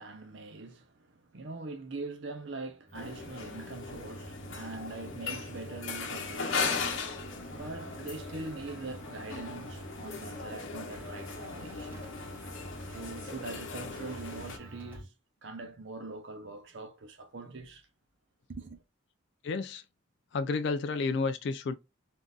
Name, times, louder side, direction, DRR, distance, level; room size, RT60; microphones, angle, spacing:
voice 1, 0.0-6.8 7.5-12.1 12.9-15.1 15.4-17.9 18.5-18.8, right 3 dB, 60° right, 0.7 m, -43 dB
sound 1, 2.9-14.6, left 4 dB, 70° left, 0.8 m, -38 dB
sound 2, 2.9-15.1, right 1 dB, 30° left, 1.0 m, -51 dB
sound 3, 5.9-15.0, right 1 dB, 10° right, 1.8 m, -53 dB
voice 2, 19.4-19.8 20.3-21.7, left 4 dB, 55° left, 0.3 m, -31 dB
3.7 x 2.5 x 2.3 m
head